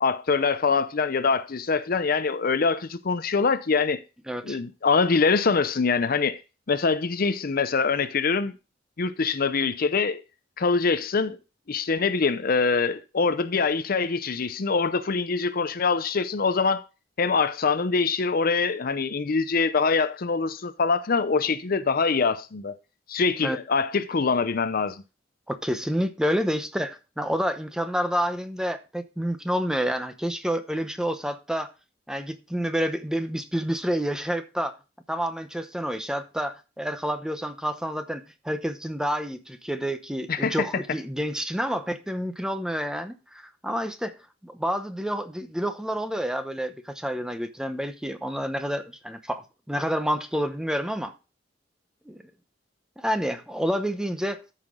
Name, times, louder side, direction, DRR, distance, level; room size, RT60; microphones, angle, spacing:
voice 1, 0.0-4.0 4.4-6.4 6.7-8.5 9.0-10.2 10.6-11.4 11.7-16.8 17.2-22.8 23.1-25.0 40.3-40.7, left 4 dB, 50° left, 0.6 m, -24 dB
voice 2, 4.3-4.6 23.4-23.6 25.5-31.7 32.1-34.8 35.1-44.2 44.4-51.1 52.1-52.2 53.0-54.4, equal, 5° right, 0.8 m, -29 dB
13.5 x 5.8 x 3.7 m
head